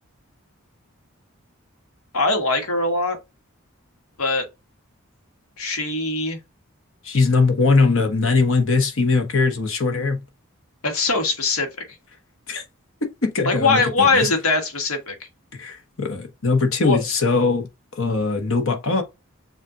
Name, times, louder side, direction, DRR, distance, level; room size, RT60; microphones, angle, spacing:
voice 1, 2.1-3.2 4.2-4.4 5.6-6.4 10.8-11.7 13.4-15.2 16.8-17.0, left 3 dB, 85° left, 1.4 m, -21 dB
voice 2, 7.0-10.2 12.5-12.6 13.2-14.3 15.6-17.7 17.9-19.0, left 4 dB, 70° left, 1.2 m, -20 dB
7.2 x 2.5 x 2.7 m
head